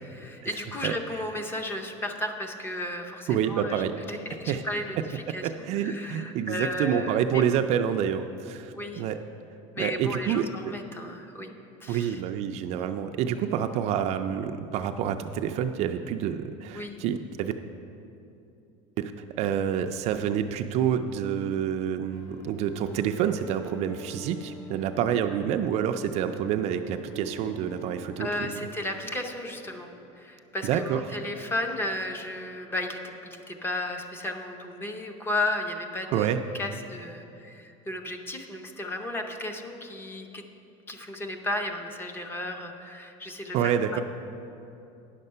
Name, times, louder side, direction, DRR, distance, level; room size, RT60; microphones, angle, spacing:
voice 1, 0.2-5.4 5.7-7.4 8.7-9.0 9.7-11.5 11.8-12.2 16.7-17.0 28.2-29.9 30.1-36.3 36.5-40.4 40.9-44.0, left 1 dB, 15° left, 4 dB, 0.6 m, -34 dB
voice 2, 3.3-3.9 4.5-4.6 5.4-9.2 9.8-10.7 11.9-17.5 19.0-19.1 19.4-28.6 30.6-31.0 36.1-36.4 43.5-44.0, right 9 dB, 45° right, 7 dB, 0.4 m, -28 dB
sound 1, 22.1-30.1, right 1 dB, 75° left, 1.3 m, -45 dB
9.9 x 6.6 x 5.4 m, 2.7 s
cardioid pair, 165°, 16 cm